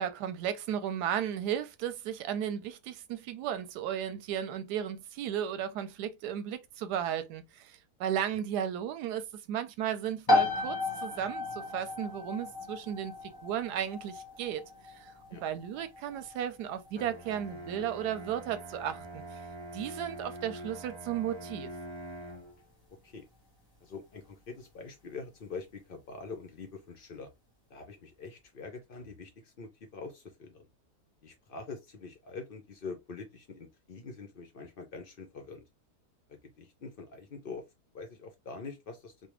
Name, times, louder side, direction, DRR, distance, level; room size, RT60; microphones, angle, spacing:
voice 1, 0.0-14.6 14.9-19.2 19.7-21.7, right 9 dB, 90° right, 1.2 m, -35 dB
sound 1, 10.3-24.8, left 2 dB, 20° left, 0.7 m, -36 dB
Bowed string instrument, 16.9-22.6, right 1 dB, 30° right, 0.6 m, -44 dB
voice 2, 23.8-27.3 27.7-30.7 31.2-35.6 36.3-37.6 37.9-39.1, left 4 dB, 60° left, 0.5 m, -44 dB
3.3 x 2.2 x 2.9 m
omnidirectional pair, 1.7 m